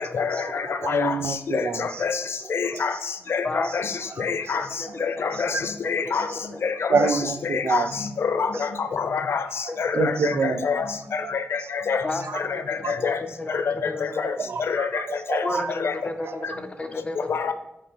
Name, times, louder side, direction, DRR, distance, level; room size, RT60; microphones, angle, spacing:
voice 1, 0.0-1.1 1.5-2.2 2.5-2.9 3.3-3.9 4.2-4.6 5.0-5.5 5.9-6.3 6.6-7.1 7.5-7.8 8.4-8.5 8.9-9.4 9.8-10.8 11.1-11.6 11.9-12.0 12.7-13.2 14.2-14.3 14.7-14.9 15.3-15.4 15.8-15.9 17.3-17.5, left 6 dB, 80° left, 10 dB, 0.6 m, -26 dB
voice 2, 0.8-2.0 2.7-2.8 4.5-4.6 5.5-5.6 6.9-7.9 9.9-10.6 12.8-13.0 14.5-15.7, right 5 dB, 85° right, 11 dB, 0.5 m, -26 dB
voice 3, 4.5-5.6 6.0-6.6 8.5-8.6 9.7-10.3 12.0-12.3 12.5-14.3 15.4-17.2 17.5-17.6, left 2 dB, 25° left, 6 dB, 0.7 m, -33 dB
7.9 x 3.2 x 6.2 m, 0.88 s
wide cardioid pair, 135°, 4 cm